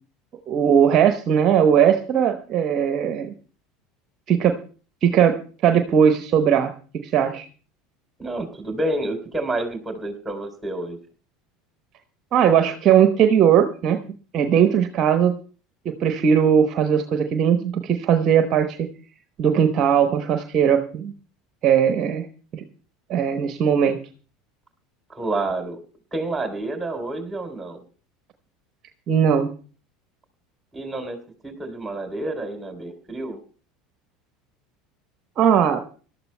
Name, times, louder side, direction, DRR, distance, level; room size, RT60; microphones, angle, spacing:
voice 1, 0.5-3.3 4.3-4.5 5.0-5.4 5.6-7.5 12.3-14.0 14.3-15.3 15.8-18.9 19.4-21.1 21.6-22.3 22.5-22.6 23.1-24.0 29.1-29.5 35.4-35.8, right 8 dB, 45° right, 7 dB, 0.9 m, -19 dB
voice 2, 8.2-11.0 25.1-25.8 26.1-27.8 30.7-31.2 31.4-33.4, right 2 dB, 15° right, 5 dB, 3.3 m, -29 dB
25.0 x 12.5 x 2.2 m, 0.40 s
figure-of-eight pair, 70°, 0 cm